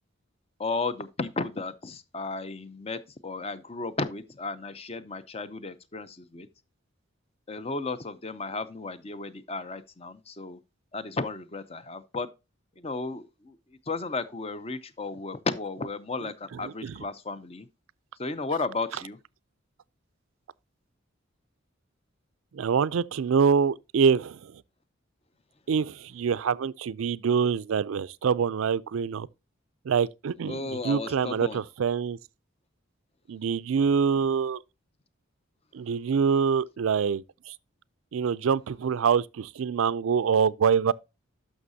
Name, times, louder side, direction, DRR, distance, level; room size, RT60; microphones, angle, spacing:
voice 1, 0.6-6.5 7.5-10.6 10.9-12.3 12.8-13.6 13.9-17.7 18.2-19.2 30.5-31.6, left 3 dB, 30° left, 0.6 m, -34 dB
voice 2, 16.5-17.0 22.5-24.5 25.7-29.3 29.9-32.2 33.3-34.6 35.7-37.5 38.1-40.9, right 6 dB, 75° right, 0.4 m, -25 dB
11.0 x 6.3 x 2.7 m
head